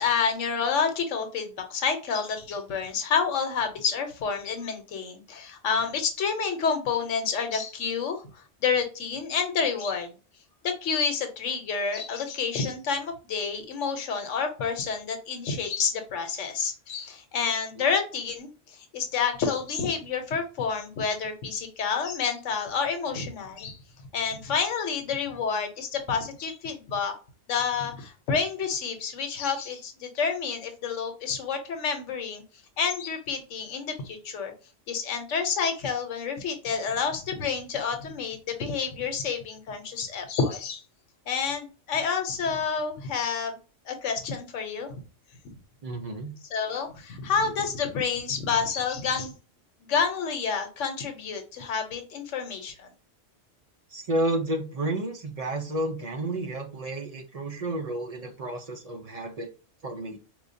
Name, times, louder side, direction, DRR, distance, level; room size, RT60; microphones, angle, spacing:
voice 1, 0.0-10.1 10.6-23.8 24.1-27.1 27.5-32.4 32.8-34.5 34.9-40.8 41.3-43.6 43.9-45.0 46.5-49.3 49.8-52.9, left 6 dB, 75° left, 6 dB, 1.1 m, -29 dB
voice 2, 45.8-46.3 53.9-59.5 59.8-60.2, right 1 dB, 45° right, 3 dB, 0.5 m, -31 dB
4.4 x 2.3 x 2.6 m, 0.35 s
omnidirectional pair, 1.3 m